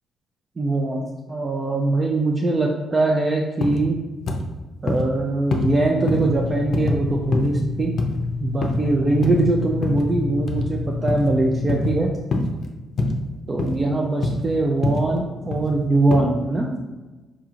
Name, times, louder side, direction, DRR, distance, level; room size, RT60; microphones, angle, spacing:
voice 1, 0.6-4.0 4.8-7.9 8.4-12.1 13.5-16.7, right 2 dB, 30° right, 0 dB, 0.4 m, -22 dB
sound 1, 3.6-3.8 4.3-4.5 4.9-5.1 5.5-5.7 6.1-6.3 6.7-7.0 7.3-7.6 8.0-8.2 8.6-8.8 9.2-9.4 9.8-10.1 10.5-10.7 11.1-11.3 11.7-12.0 12.3-12.5 13.0-13.2 13.6-13.8 14.2-14.5 14.8-15.1 15.5-15.8 16.1-16.2, left 2 dB, 55° left, 0.5 m, -24 dB
sound 2, 6.1-12.1, left 4 dB, 80° right, 0.8 m, -29 dB
4.9 x 2.8 x 2.4 m, 1.2 s
cardioid pair, 90°, 0 cm